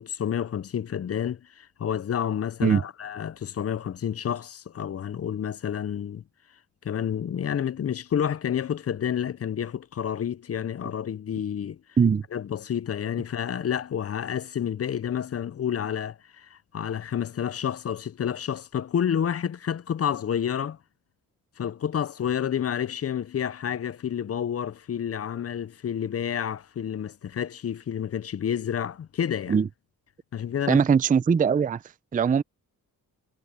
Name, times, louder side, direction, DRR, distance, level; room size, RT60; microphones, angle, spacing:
voice 1, 0.0-6.2 6.8-11.8 12.3-20.8 21.6-29.6 30.3-30.8, left 9 dB, 40° left, 0.5 m, -29 dB
voice 2, 30.7-31.8 32.1-32.4, right 6 dB, 20° right, 0.4 m, -21 dB
cardioid pair, 85°, 38 cm